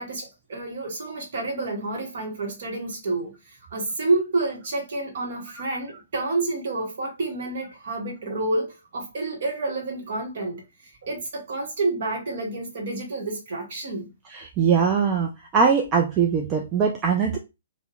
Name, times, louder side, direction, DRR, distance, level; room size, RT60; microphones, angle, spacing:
voice 1, 0.0-14.1, right 2 dB, 55° right, 1.0 m, -29 dB
voice 2, 14.3-17.4, right 6 dB, 25° right, 0.3 m, -21 dB
2.6 x 2.0 x 2.4 m
figure-of-eight pair, 125°, 0 cm